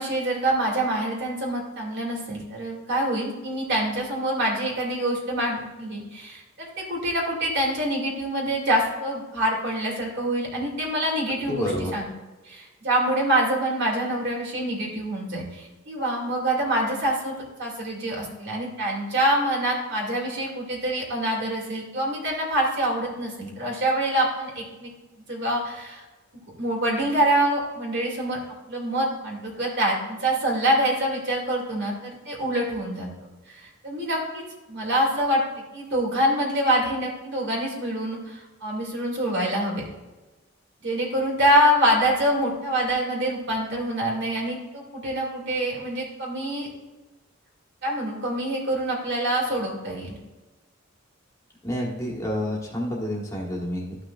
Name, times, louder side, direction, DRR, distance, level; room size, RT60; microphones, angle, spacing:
voice 1, 0.0-12.1 12.5-24.9 25.3-26.0 26.6-28.4 28.7-35.4 35.7-39.8 40.8-46.7 47.8-50.2, right 1 dB, 60° right, -2 dB, 2.5 m, -25 dB
voice 2, 11.5-11.9 51.6-54.0, equal, 15° left, -2 dB, 1.4 m, -29 dB
13.0 x 5.9 x 2.4 m, 1.2 s
head